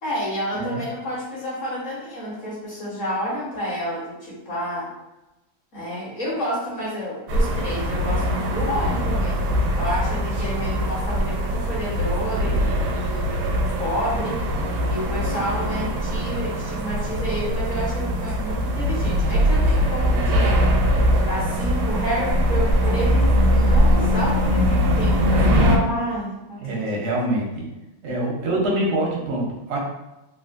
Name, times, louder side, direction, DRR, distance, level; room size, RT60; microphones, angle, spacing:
voice 1, 0.0-4.9 5.7-13.3 13.8-14.5 14.9-20.7 21.2-27.0, equal, 45° left, -7 dB, 1.3 m, -29 dB
sound 1, 7.3-25.8, equal, 80° right, 1.4 m, -21 dB
voice 2, 26.6-27.6 28.0-29.8, right 1 dB, 55° right, -3 dB, 0.8 m, -25 dB
3.5 x 2.5 x 2.5 m, 0.99 s
omnidirectional pair, 2.2 m